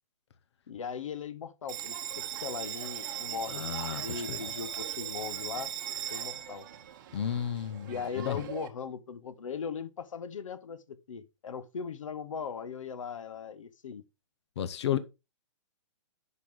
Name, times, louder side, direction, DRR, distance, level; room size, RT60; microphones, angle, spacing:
voice 1, 0.7-5.7 6.1-6.7 7.8-14.0, left 6 dB, 90° left, 0.8 m, -39 dB
Bell, 1.7-8.7, right 10 dB, 40° right, 1.0 m, -39 dB
voice 2, 3.5-4.0 4.3-4.4 7.1-8.5 14.6-15.0, left 9 dB, 60° left, 0.7 m, -33 dB
7.7 x 5.8 x 3.7 m
hypercardioid pair, 165°, 16 cm